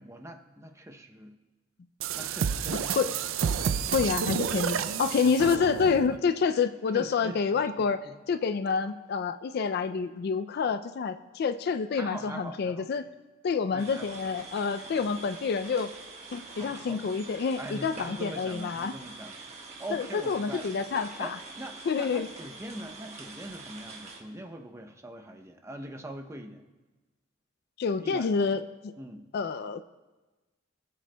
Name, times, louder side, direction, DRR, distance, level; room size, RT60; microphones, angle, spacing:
voice 1, 0.0-1.4 2.2-3.1 3.6-4.1 5.2-5.3 6.9-8.2 11.9-12.9 13.7-14.1 16.6-17.0 17.3-20.7 21.2-26.6 27.9-28.5 29.0-29.3, right 1 dB, 15° right, 4 dB, 0.6 m, -42 dB
sound 1, 2.0-6.2, right 7 dB, 85° right, 0.4 m, -30 dB
voice 2, 3.9-13.1 13.4-15.9 16.3-18.9 19.9-21.4 21.9-22.3 27.8-28.9 29.3-29.8, left 5 dB, 55° left, 11 dB, 0.3 m, -28 dB
sound 2, 13.8-24.2, right 3 dB, 35° right, 1.2 m, -45 dB
21.0 x 7.7 x 2.2 m, 1.2 s
head